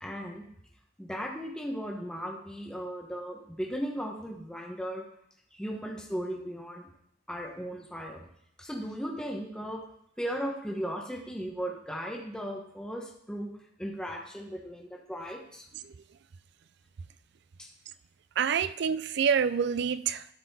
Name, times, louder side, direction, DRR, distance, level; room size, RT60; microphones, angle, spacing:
voice 1, 0.0-0.4 1.0-5.0 5.5-6.9 7.3-8.3 8.6-9.8 10.2-13.5 13.8-15.6 17.6-17.7, equal, 5° left, -1 dB, 1.0 m, -36 dB
voice 2, 18.4-20.3, right 7 dB, 65° right, 14 dB, 0.4 m, -27 dB
12.5 x 4.2 x 4.1 m, 0.71 s
head